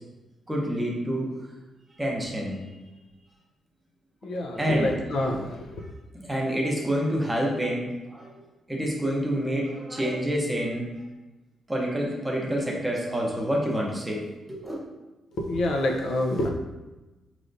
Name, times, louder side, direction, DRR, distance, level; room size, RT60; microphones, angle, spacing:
voice 1, 0.5-1.3 2.0-2.6 4.6-4.9 6.1-8.3 8.7-10.9 11.7-14.2 14.5-14.8, equal, 10° right, -2 dB, 0.7 m, -27 dB
voice 2, 4.2-5.6 15.4-16.5, left 1 dB, 65° left, 1 dB, 0.6 m, -27 dB
4.9 x 3.2 x 2.6 m, 1.1 s
wide cardioid pair, 160°, 0 cm